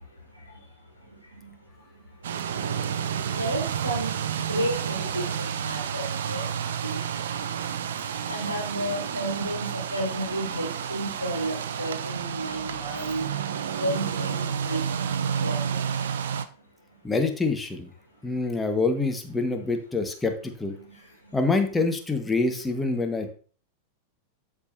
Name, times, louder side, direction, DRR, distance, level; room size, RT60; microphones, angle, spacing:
sound 1, 2.2-16.5, right 8 dB, 60° right, 0.5 m, -30 dB
voice 1, 3.4-6.5 6.8-7.0 8.3-13.3 13.8-14.8 15.4-15.6, right 1 dB, 90° right, 0 dB, 1.3 m, -31 dB
voice 2, 17.0-17.9 18.2-20.7 21.3-23.3, left 3 dB, 10° left, 5 dB, 1.3 m, -26 dB
13.0 x 4.9 x 2.7 m, 0.41 s
figure-of-eight pair, 90°, 0 cm